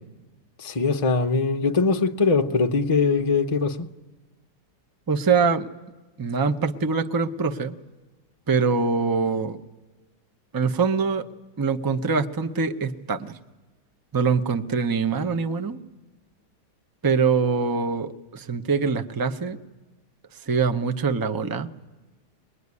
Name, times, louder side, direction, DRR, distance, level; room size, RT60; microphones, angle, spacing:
voice 1, 0.6-3.9, left 4 dB, 30° left, 0.6 m, -22 dB
voice 2, 5.1-5.7 6.2-7.8 8.5-9.6 10.5-11.3 11.6-13.3 14.1-15.8 17.0-19.6 20.4-21.7, right 5 dB, 25° right, 0.4 m, -24 dB
23.5 x 21.0 x 9.7 m
omnidirectional pair, 1.8 m